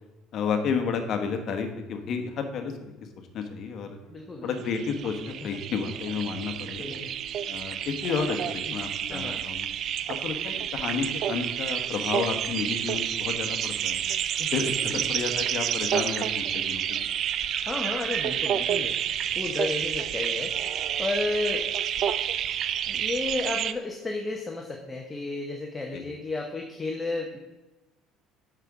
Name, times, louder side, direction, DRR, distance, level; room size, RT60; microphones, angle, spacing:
voice 1, 0.3-4.0 4.4-6.9 7.5-9.7 10.1-14.0 14.4-17.1 25.9-26.0, left 5 dB, 50° left, 6 dB, 1.1 m, -31 dB
Bowed string instrument, 3.9-8.5, right 6 dB, 65° right, 1.6 m, -49 dB
voice 2, 4.1-4.5 6.8-7.1 9.1-9.4 14.8-15.0 17.7-19.0 19.3-20.6 21.0-21.7 22.9-27.4, left 3 dB, 15° left, 1 dB, 0.9 m, -32 dB
sound 1, 4.6-23.7, right 9 dB, 50° right, 0.4 m, -29 dB
7.6 x 5.8 x 4.9 m, 1.1 s
cardioid pair, 125°, 0 cm